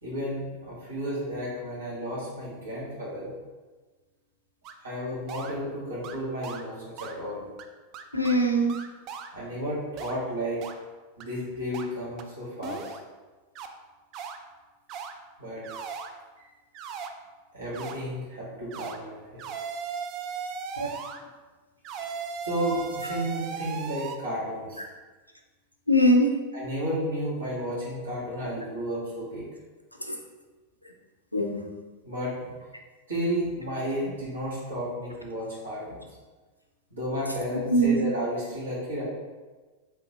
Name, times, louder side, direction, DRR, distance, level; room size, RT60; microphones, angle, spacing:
voice 1, 0.0-3.3 4.8-7.4 9.3-10.6 11.2-12.9 15.4-15.6 17.5-19.4 22.4-24.8 26.5-29.4 32.0-32.5 33.1-36.0 36.9-39.0, equal, 70° right, -7 dB, 1.5 m, -32 dB
sound 1, 4.6-4.7 5.3-5.5 6.0-6.2 6.4-6.6 7.0-7.1 7.6-7.7 7.9-8.4 8.7-9.3 10.0-10.1 10.6-10.7 11.2-11.3 11.7-11.8 12.2-12.3 12.6-13.0 13.5-13.7 14.1-14.4 14.9-15.1 15.6-16.1 16.7-17.1 17.7-17.9 18.7-19.0 19.4-21.2 21.8-24.2, right 6 dB, 40° right, 0.3 m, -36 dB
voice 2, 8.1-8.8 20.8-20.9 25.9-26.3 30.1-30.2 31.3-31.7 37.7-38.1, right 1 dB, 90° left, 3 dB, 0.4 m, -22 dB
3.8 x 2.9 x 3.0 m, 1.3 s
figure-of-eight pair, 90°, 0 cm